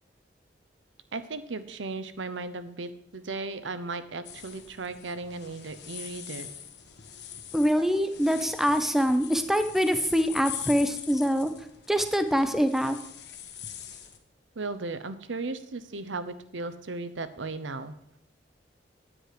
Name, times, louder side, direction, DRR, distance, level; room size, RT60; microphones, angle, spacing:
voice 1, 1.1-6.5 14.6-17.9, right 3 dB, 90° right, 12 dB, 0.8 m, -36 dB
sound 1, 4.2-14.2, left 9 dB, 65° left, 1.4 m, -43 dB
voice 2, 7.5-11.5 11.9-13.0, equal, ahead, 8 dB, 0.6 m, -24 dB
9.7 x 9.6 x 4.9 m, 0.73 s
head